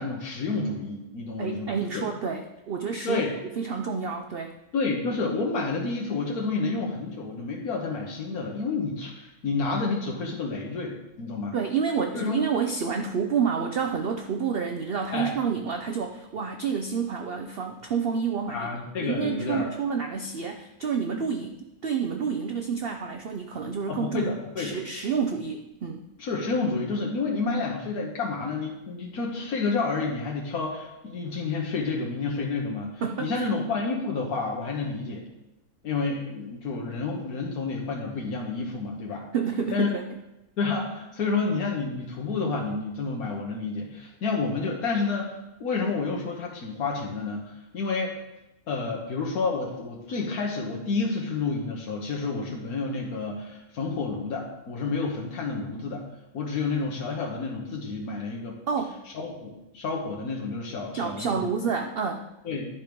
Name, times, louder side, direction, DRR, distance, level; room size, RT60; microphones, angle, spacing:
voice 1, 0.0-2.0 3.0-3.3 4.7-11.6 12.1-12.4 15.1-15.3 18.5-19.7 23.9-24.7 26.2-35.3 35.8-39.3 39.7-39.9 40.6-45.3 45.6-48.1 48.7-56.0 56.3-58.6 59.1-61.5 62.4-62.7, left 4 dB, 85° left, -1 dB, 1.5 m, -29 dB
voice 2, 1.4-3.2 3.6-4.5 11.5-18.7 19.0-21.5 21.8-24.3 24.6-26.1 33.0-33.5 39.3-40.0 58.7-59.0 60.9-62.3, right 6 dB, 60° right, 5 dB, 0.6 m, -29 dB
10.5 x 4.6 x 5.1 m, 0.96 s
omnidirectional pair, 1.5 m